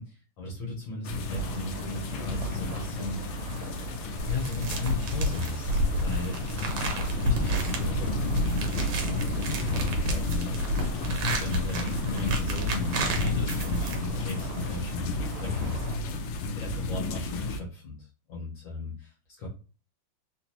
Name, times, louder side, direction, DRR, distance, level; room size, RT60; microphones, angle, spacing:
voice 1, 0.0-3.2 4.3-16.2 16.5-19.5, left 2 dB, 65° left, -3 dB, 1.8 m, -37 dB
sound 1, 1.0-17.6, left 2 dB, 80° left, 1.5 m, -32 dB
sound 2, 1.3-16.0, right 8 dB, 90° right, 1.5 m, -46 dB
sound 3, 4.2-14.3, equal, 70° right, 1.5 m, -31 dB
3.9 x 2.9 x 2.5 m, 0.36 s
omnidirectional pair, 2.4 m